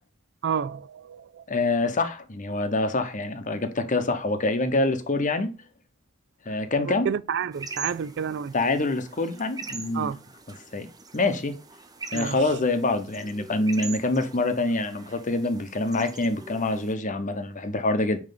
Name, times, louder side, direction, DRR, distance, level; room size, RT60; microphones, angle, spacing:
voice 1, 0.4-1.4 6.9-8.5 9.9-10.2 12.1-12.5, right 7 dB, 55° right, 0.3 m, -30 dB
voice 2, 1.5-5.5 6.5-7.1 8.5-10.1 10.7-10.9 11.1-11.6 12.1-18.2, left 2 dB, 35° left, 0.9 m, -25 dB
sound 1, 7.5-16.9, right 4 dB, 15° right, 0.7 m, -42 dB
9.0 x 3.2 x 3.8 m
head